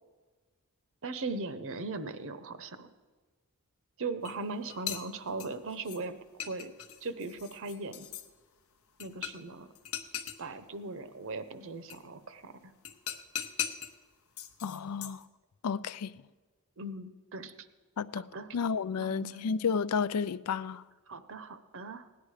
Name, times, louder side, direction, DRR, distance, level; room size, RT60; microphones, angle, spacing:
voice 1, 1.0-2.9 4.0-6.2 6.5-6.7 7.0-8.1 9.0-9.7 10.4-12.7 16.8-17.7 18.3-18.5 19.0-19.5 21.1-22.1, right 3 dB, 60° right, 0.8 m, -39 dB
sound 1, 4.3-4.4 4.7-6.0 6.4-8.3 9.0-9.5 9.8-10.4 11.9-12.0 12.9-13.9 14.4-15.2, left 9 dB, 70° left, 0.8 m, -39 dB
voice 2, 14.6-15.2 15.6-16.1 18.0-18.2 18.5-20.8, left 6 dB, 90° left, 0.4 m, -31 dB
17.0 x 10.5 x 4.9 m
head